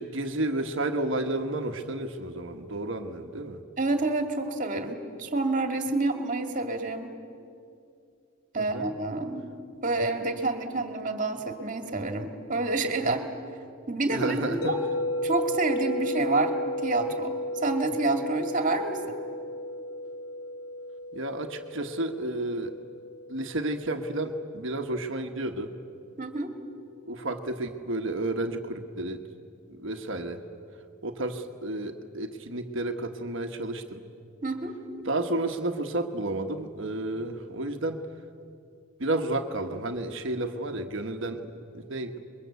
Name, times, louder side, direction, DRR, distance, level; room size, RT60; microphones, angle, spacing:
voice 1, 0.0-3.6 8.6-8.9 14.1-14.7 21.1-22.7 23.3-25.7 27.1-29.3 29.7-30.4 31.0-34.0 35.0-38.1 39.0-41.4 41.7-42.2, right 2 dB, 60° right, 5 dB, 1.3 m, -31 dB
voice 2, 3.8-7.1 8.5-9.5 9.8-13.3 13.9-14.8 15.2-16.6 16.8-19.2 26.2-26.5 34.4-34.8, right 2 dB, 35° right, 5 dB, 2.2 m, -28 dB
sound 1, 14.6-24.7, left 1 dB, 75° left, 2.9 m, -34 dB
28.5 x 22.5 x 8.2 m, 2.5 s
head